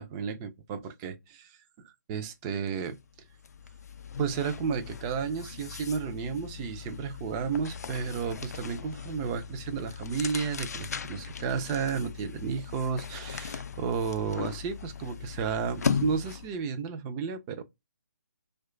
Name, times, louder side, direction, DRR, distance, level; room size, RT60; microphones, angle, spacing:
voice 1, 0.0-1.6 1.8-3.0 4.2-17.6, right 6 dB, 15° right, 0.3 m, -32 dB
sound 1, 2.7-2.9 3.2-16.6, left 6 dB, 60° left, 0.4 m, -38 dB
3.0 x 2.2 x 3.6 m
figure-of-eight pair, 150°, 10 cm